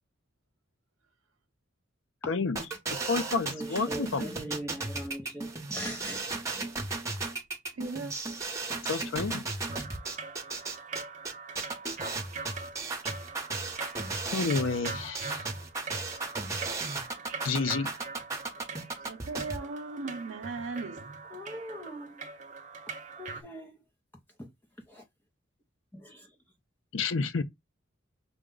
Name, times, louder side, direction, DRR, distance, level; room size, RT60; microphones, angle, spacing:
voice 1, 2.3-2.6 3.1-4.3 8.9-9.4 14.3-15.4 17.4-17.9 26.9-27.4, left 4 dB, 70° left, 0.6 m, -30 dB
sound 1, 2.6-19.6, right 3 dB, 15° right, 1.0 m, -35 dB
voice 2, 3.5-6.7 21.3-22.2 23.2-23.8 24.4-24.5 24.9-25.0 25.9-26.3, equal, 10° left, 0.6 m, -41 dB
voice 3, 7.7-8.1 19.1-21.1, right 3 dB, 75° right, 0.6 m, -37 dB
sound 2, 9.7-23.4, right 4 dB, 35° right, 0.7 m, -43 dB
6.2 x 2.3 x 3.8 m
head